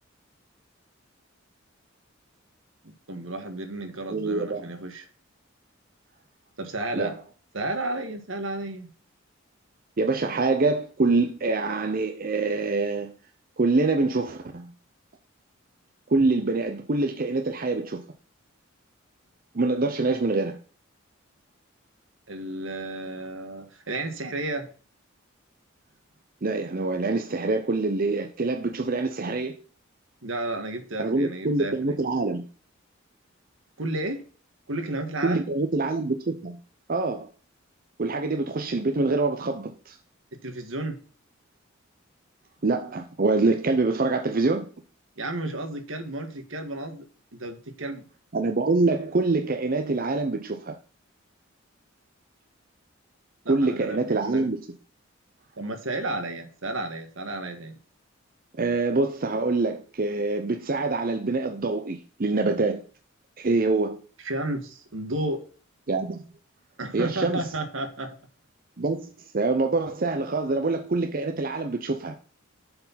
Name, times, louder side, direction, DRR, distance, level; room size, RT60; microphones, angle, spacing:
voice 1, 2.8-5.1 6.6-7.1 7.5-8.9 22.3-24.7 30.2-32.0 33.8-34.2 34.7-35.5 40.3-41.0 45.2-47.0 47.3-48.0 53.4-54.5 55.6-57.8 64.2-65.4 66.8-68.1, right 2 dB, 70° right, 1.6 m, -32 dB
voice 2, 4.1-4.6 6.9-7.2 10.0-13.1 13.6-14.7 16.1-18.0 19.5-20.6 26.4-29.6 31.0-32.4 35.2-36.6 36.9-37.3 38.0-39.9 42.6-44.7 48.3-50.8 53.5-54.6 58.6-62.8 63.4-64.0 65.9-66.2 66.9-67.4 68.8-72.2, right 3 dB, 45° right, 0.6 m, -25 dB
7.6 x 4.6 x 5.7 m
head